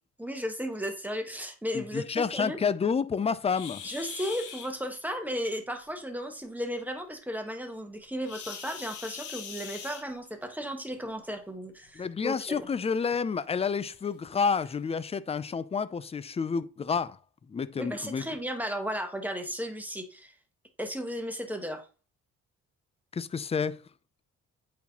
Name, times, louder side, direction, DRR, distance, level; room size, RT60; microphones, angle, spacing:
voice 1, 0.2-2.6 3.8-12.6 17.8-20.3 20.8-21.9, equal, 5° right, 1.2 m, -35 dB
voice 2, 1.7-3.8 12.0-17.2 17.5-18.2 23.1-23.8, left 5 dB, 20° left, 0.4 m, -29 dB
sound 1, 3.5-4.7 8.2-10.5 11.7-11.9 12.4-12.5 13.1-13.2 14.0-14.1 14.6-14.8, left 7 dB, 80° left, 1.2 m, -42 dB
8.4 x 4.0 x 2.9 m
cardioid pair, 90°, 30 cm